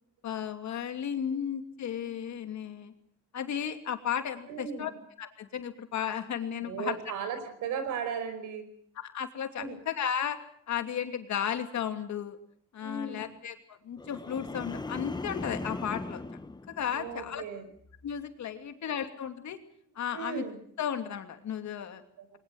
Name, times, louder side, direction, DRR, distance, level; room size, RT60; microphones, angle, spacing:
voice 1, 0.2-2.9 3.3-4.9 5.2-7.0 9.0-10.4 10.7-12.4 12.7-16.2 16.7-17.4 18.0-19.6 20.0-20.4 20.8-22.0, left 8 dB, 65° left, 7 dB, 2.8 m, -34 dB
voice 2, 4.5-4.9 6.6-8.7 9.6-9.8 12.8-13.3 16.9-17.6 20.1-20.6 22.2-22.4, right 6 dB, 90° right, 9 dB, 5.2 m, -36 dB
sound 1, 14.0-17.4 17.8-18.2, left 2 dB, 15° left, 1.1 m, -39 dB
22.0 x 20.0 x 7.8 m, 0.64 s
cardioid pair, 90°, 30 cm